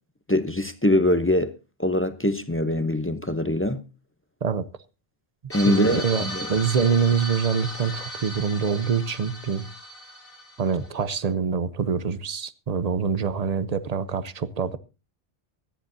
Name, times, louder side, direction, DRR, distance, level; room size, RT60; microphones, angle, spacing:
voice 1, 0.3-1.5 1.8-3.8 5.5-6.5, left 1 dB, 15° left, 0.7 m, -23 dB
sound 1, 5.5-11.0, equal, 55° left, 2.0 m, -36 dB
voice 2, 5.6-9.7 10.6-14.8, right 6 dB, 40° right, 0.8 m, -25 dB
24.0 x 10.5 x 2.7 m
omnidirectional pair, 1.1 m